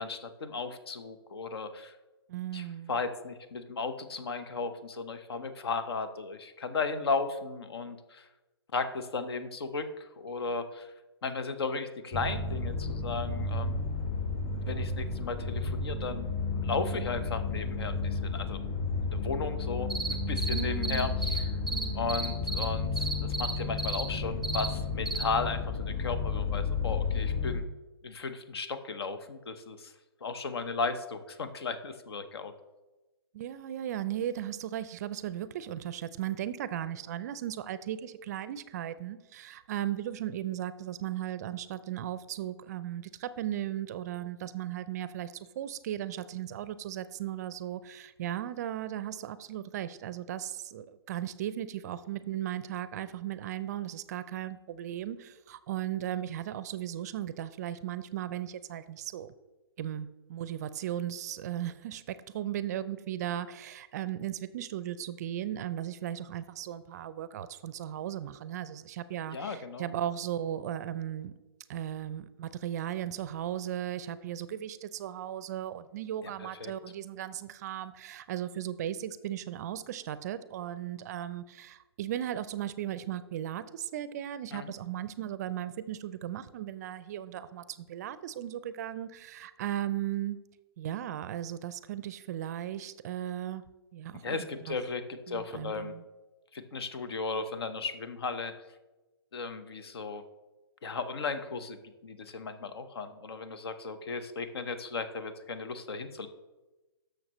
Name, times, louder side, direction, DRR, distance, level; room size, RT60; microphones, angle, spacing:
voice 1, 0.0-1.9 2.5-8.3 8.7-10.9 11.2-13.8 14.5-16.3 16.5-18.6 19.0-21.4 21.9-27.6 28.0-29.9 30.2-32.5 69.3-69.9 76.4-76.7 84.5-84.7 94.1-95.9 96.5-98.5 99.3-100.2 100.8-106.3, left 4 dB, 70° left, 10 dB, 1.0 m, -35 dB
voice 2, 2.3-2.9 20.5-21.1 21.7-22.1 33.3-59.3 59.8-71.3 71.7-90.4 90.8-93.6 93.9-94.8 95.3-96.0, right 11 dB, 40° right, 15 dB, 0.4 m, -36 dB
sound 1, 12.1-27.6, left 4 dB, 30° left, 1.3 m, -32 dB
sound 2, 19.9-21.4 21.7-22.6 23.0-23.5 23.8-24.0 24.4-24.7 25.0-25.2, right 3 dB, ahead, 1.0 m, -32 dB
12.0 x 6.6 x 3.0 m, 1.1 s
hypercardioid pair, 145°, 14 cm